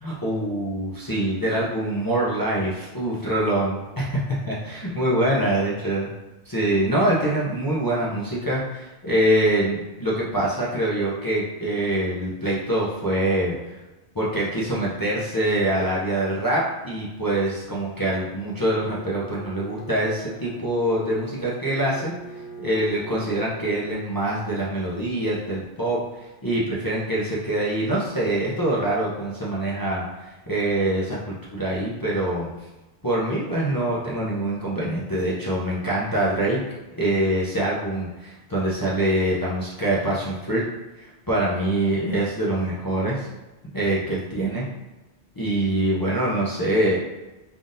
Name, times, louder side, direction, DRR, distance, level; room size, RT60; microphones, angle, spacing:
voice 1, 0.0-6.1 6.5-13.8 14.1-22.1 22.6-26.0 26.4-32.5 33.0-36.6 37.0-40.6 41.0-43.3 43.7-44.7 45.4-47.0, right 1 dB, 25° left, -6 dB, 0.5 m, -24 dB
Bowed string instrument, 18.6-24.1, right 2 dB, 60° left, 0.9 m, -42 dB
3.9 x 3.5 x 2.5 m, 1.1 s
omnidirectional pair, 1.1 m